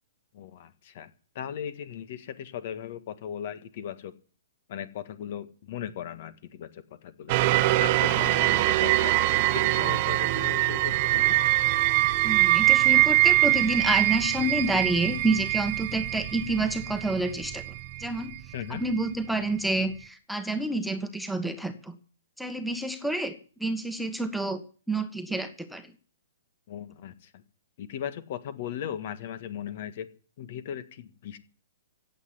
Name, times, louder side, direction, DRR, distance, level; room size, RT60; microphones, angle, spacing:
voice 1, 0.3-1.1 1.3-4.1 4.7-7.3 7.8-11.3 18.5-18.8 26.7-27.4 27.8-30.1 30.4-31.4, left 9 dB, 55° left, 12 dB, 1.7 m, -38 dB
sound 1, 7.3-18.4 18.9-19.0, right 18 dB, 40° right, 0.8 m, -23 dB
voice 2, 12.2-17.6 18.0-18.3 18.7-22.0 22.4-23.3 23.6-24.6 24.9-25.9, right 2 dB, ahead, 6 dB, 1.4 m, -28 dB
16.0 x 8.2 x 9.8 m, 0.42 s
hypercardioid pair, 140°, 0 cm